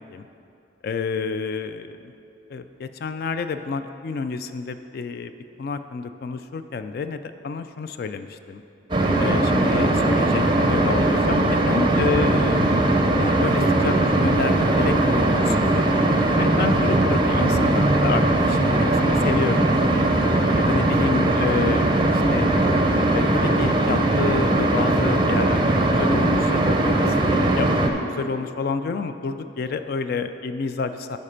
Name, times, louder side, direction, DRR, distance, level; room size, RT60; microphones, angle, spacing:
voice 1, 0.8-2.1 2.5-5.3 5.6-8.6 9.2-12.8 13.2-16.0 16.4-20.1 20.6-22.5 23.1-31.2, left 4 dB, 50° left, 10 dB, 0.3 m, -29 dB
sound 1, 8.9-27.9, right 1 dB, 25° right, 0.5 m, -20 dB
10.0 x 4.2 x 5.7 m, 2.6 s
head